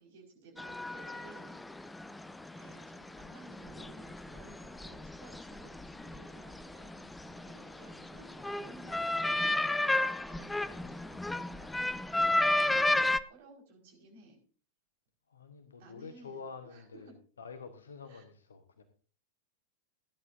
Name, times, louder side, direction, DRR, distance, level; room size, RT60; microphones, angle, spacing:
voice 1, 0.0-1.6 2.5-12.7 13.2-14.4 15.8-17.0 18.1-18.3, right 3 dB, 55° right, 1 dB, 5.0 m, -57 dB
sound 1, 0.6-13.2, left 2 dB, 5° left, 0.5 m, -33 dB
voice 2, 15.3-17.1 17.4-18.8, left 5 dB, 70° left, 9 dB, 1.1 m, -47 dB
17.5 x 11.0 x 2.7 m, 0.40 s
figure-of-eight pair, 90°, 0 cm